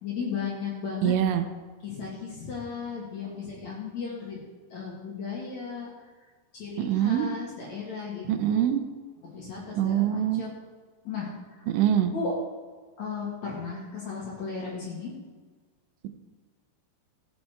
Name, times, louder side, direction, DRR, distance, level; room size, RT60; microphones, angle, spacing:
voice 1, 0.0-1.1 1.8-4.4 4.7-5.9 6.5-8.6 9.3-10.5 11.0-11.7 12.1-12.3 13.0-15.1, left 5 dB, 50° left, -4 dB, 2.5 m, -35 dB
voice 2, 1.0-1.5 6.8-7.3 8.3-8.8 9.8-10.4 11.7-12.1, right 10 dB, 85° right, 9 dB, 3.2 m, -24 dB
15.0 x 8.4 x 4.5 m, 1.4 s
omnidirectional pair, 5.3 m